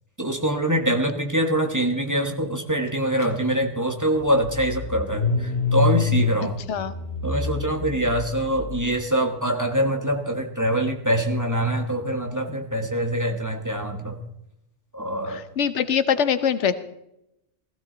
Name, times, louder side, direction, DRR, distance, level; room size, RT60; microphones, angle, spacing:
voice 1, 0.2-6.6 7.2-14.2 14.9-15.4, right 1 dB, 15° right, 3 dB, 1.3 m, -24 dB
Car / Engine starting, 3.2-3.3 3.6-8.8, left 4 dB, 65° left, 1.8 m, -27 dB
voice 2, 15.6-16.7, left 8 dB, 80° left, 12 dB, 1.1 m, -22 dB
16.0 x 16.0 x 3.9 m, 0.84 s
omnidirectional pair, 1.2 m